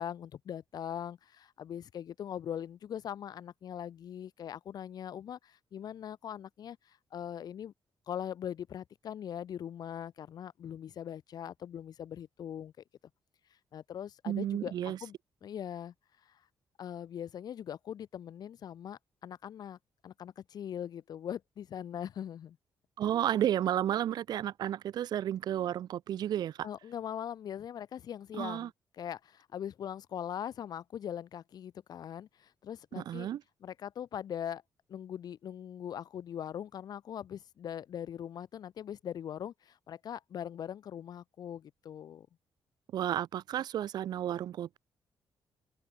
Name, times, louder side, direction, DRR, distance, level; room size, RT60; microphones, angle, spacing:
voice 1, 0.0-7.7 8.1-12.7 13.7-14.7 15.0-15.2 15.4-15.9 16.2-16.4 16.8-22.6 26.6-33.3 33.6-34.6 34.9-42.3, left 9 dB, 55° left, 1.3 m, -41 dB
voice 2, 14.3-15.0 23.0-26.7 28.3-28.7 32.9-33.4 42.9-44.8, right 11 dB, 60° right, 0.5 m, -32 dB
open air
wide cardioid pair, 175°, 8 cm